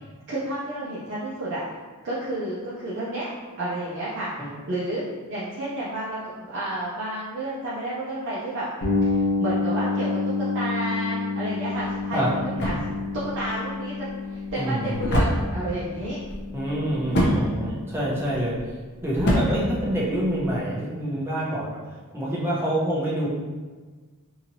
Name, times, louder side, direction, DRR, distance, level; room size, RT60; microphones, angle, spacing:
voice 1, 0.3-1.6 2.0-3.3 3.6-4.3 4.7-5.0 5.3-8.7 9.1-12.7 13.2-16.2 17.1-17.7 19.5-19.9, right 1 dB, 55° right, -9 dB, 0.6 m, -31 dB
sound 1, 8.8-18.5, left 3 dB, 70° left, 0.9 m, -29 dB
sound 2, 11.7-20.6, equal, 50° left, 0.6 m, -29 dB
voice 2, 14.6-15.0 16.5-18.6 19.0-23.3, right 1 dB, 10° right, -6 dB, 0.6 m, -27 dB
2.9 x 2.8 x 2.6 m, 1.4 s
head